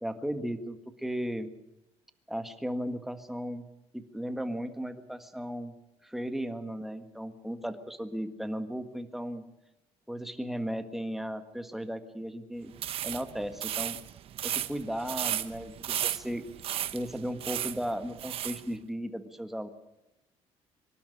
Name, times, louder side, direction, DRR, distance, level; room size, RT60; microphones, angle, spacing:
voice 1, 0.0-1.5 2.3-3.6 3.9-5.7 6.0-9.4 10.1-12.7 13.0-14.0 14.4-16.4 16.9-19.7, equal, ahead, 8 dB, 1.6 m, -36 dB
sound 1, 12.7-18.6, right 11 dB, 55° right, 1.0 m, -34 dB
24.5 x 12.0 x 9.9 m, 0.95 s
cardioid pair, 130°, 11 cm